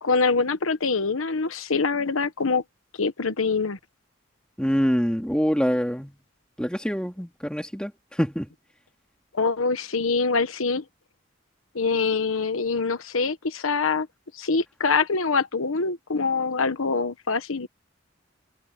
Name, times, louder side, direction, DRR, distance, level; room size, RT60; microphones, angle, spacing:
voice 1, 0.0-2.6 3.0-3.8 9.3-10.8 11.7-14.1 14.3-17.7, left 4 dB, 90° left, 1.1 m, -24 dB
voice 2, 4.6-6.2 6.6-7.9 8.2-8.5, equal, 5° left, 2.9 m, -25 dB
head